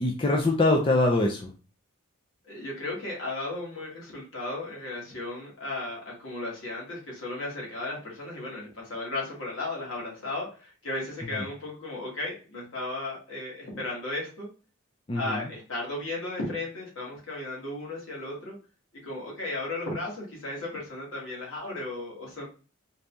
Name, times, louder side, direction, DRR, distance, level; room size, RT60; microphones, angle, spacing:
voice 1, 0.0-1.5 11.2-11.5 15.1-15.5, left 2 dB, 25° left, 0 dB, 0.5 m, -24 dB
voice 2, 2.5-14.5 15.2-18.6 19.0-22.4, left 2 dB, 65° left, -3 dB, 2.0 m, -35 dB
4.0 x 2.7 x 3.4 m, 0.35 s
head